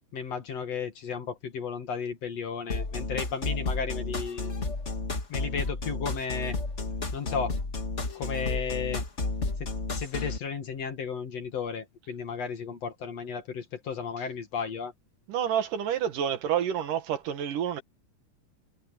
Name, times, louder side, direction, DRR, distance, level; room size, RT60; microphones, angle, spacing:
voice 1, 0.1-4.5 5.3-6.6 7.1-7.5 8.1-9.0 9.6-9.7 9.9-14.9, left 6 dB, 50° left, 3.0 m, -34 dB
sound 1, 2.7-10.4, left 3 dB, 30° left, 1.5 m, -32 dB
voice 2, 15.3-17.8, right 9 dB, 75° right, 3.2 m, -29 dB
omnidirectional pair, 3.8 m